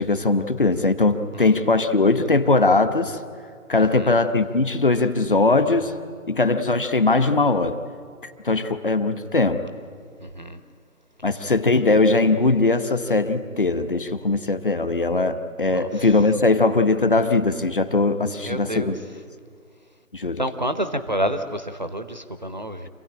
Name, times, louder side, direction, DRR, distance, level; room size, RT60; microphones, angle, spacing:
voice 1, 0.0-3.2 3.7-5.9 6.3-7.8 8.2-9.6 11.2-19.0 20.1-20.4, left 3 dB, 40° left, 10 dB, 1.0 m, -20 dB
voice 2, 3.8-4.1 10.2-10.6 15.7-15.9 18.4-18.9 20.4-22.9, equal, 30° right, 10 dB, 0.7 m, -29 dB
26.5 x 16.0 x 8.8 m, 2.1 s
figure-of-eight pair, 160°, 43 cm